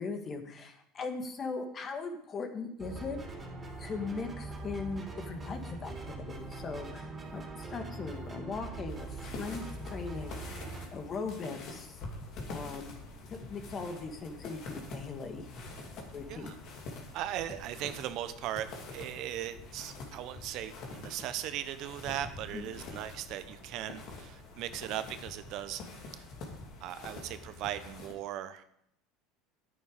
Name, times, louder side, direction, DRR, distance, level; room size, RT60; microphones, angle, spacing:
voice 1, 0.0-3.2 3.8-9.1 9.4-10.5 10.9-12.0 12.5-12.9 13.3-15.5 16.1-16.6 22.5-22.8, left 4 dB, 35° left, 6 dB, 1.7 m, -39 dB
sound 1, 2.8-10.9, right 2 dB, 25° right, 3.1 m, -42 dB
sound 2, 8.9-28.1, left 3 dB, 55° left, 2.7 m, -46 dB
voice 2, 17.1-18.7 18.9-25.8 26.2-26.3 26.8-28.7, right 12 dB, 60° right, 12 dB, 0.8 m, -38 dB
10.0 x 9.3 x 5.1 m, 0.73 s
supercardioid pair, 95°, 0 cm